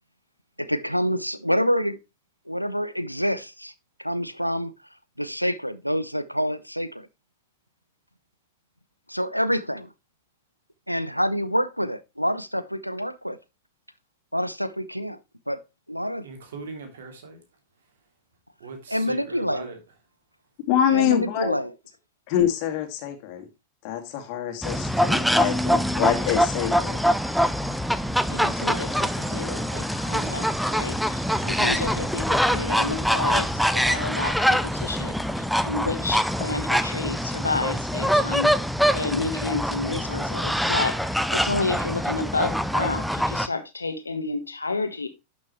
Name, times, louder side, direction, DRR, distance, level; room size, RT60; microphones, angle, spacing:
voice 1, 0.6-2.0 2.5-3.7 4.0-4.7 5.2-7.1 9.1-9.9 10.9-13.4 14.3-15.2 15.5-15.6 15.9-16.3 18.9-19.7 20.9-21.7, equal, 90° right, 0.6 m, -27 dB
voice 2, 16.2-17.4 18.6-19.8, right 4 dB, 60° right, 3.0 m, -40 dB
voice 3, 20.7-21.6 22.3-23.4 23.8-27.0, left 10 dB, 45° left, 2.3 m, -25 dB
sound 1, 24.6-43.5, equal, ahead, 0.6 m, -24 dB
voice 4, 28.3-38.5 38.9-40.9 41.3-45.1, left 3 dB, 80° left, 1.4 m, -30 dB
11.5 x 6.2 x 3.2 m
figure-of-eight pair, 90°, 0 cm